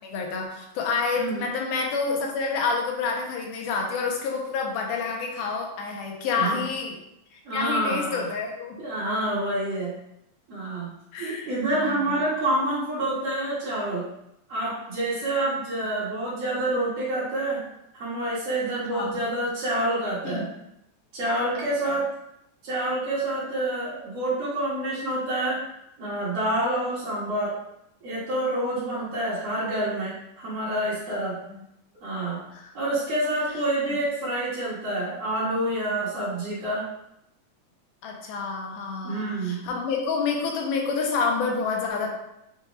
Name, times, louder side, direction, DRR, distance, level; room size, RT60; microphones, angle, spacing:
voice 1, 0.0-7.0 7.3-8.8 11.1-12.2 18.9-19.2 20.2-20.5 21.6-21.7 29.0-29.1 31.1-31.2 31.5-31.6 32.5-32.7 33.8-34.0 38.0-42.1, left 4 dB, 85° left, 1 dB, 2.2 m, -28 dB
voice 2, 1.1-1.5 6.3-6.6 7.4-8.2 8.8-9.9 10.5-10.9 11.2-14.0 14.5-17.6 17.9-20.5 21.1-22.1 22.6-25.6 26.0-27.6 28.0-31.4 32.0-32.4 32.7-36.9 39.0-39.6, right 1 dB, 55° right, -9 dB, 2.1 m, -27 dB
6.1 x 2.3 x 3.0 m, 0.82 s
omnidirectional pair, 3.6 m